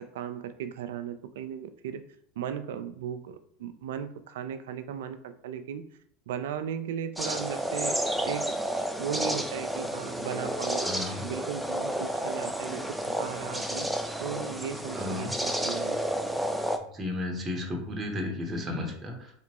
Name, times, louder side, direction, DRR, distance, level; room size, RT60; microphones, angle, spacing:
voice 1, 0.0-2.0 2.4-5.8 6.3-8.6 9.0-10.9 11.2-13.9 14.2-16.0, right 8 dB, 75° right, 10 dB, 0.3 m, -36 dB
sound 1, 7.2-16.8, equal, 5° right, 0.4 m, -31 dB
voice 2, 10.8-11.2 14.9-15.3 16.9-19.3, left 2 dB, 25° right, 1 dB, 0.9 m, -33 dB
3.3 x 2.9 x 2.9 m, 0.65 s
hypercardioid pair, 90°, 0 cm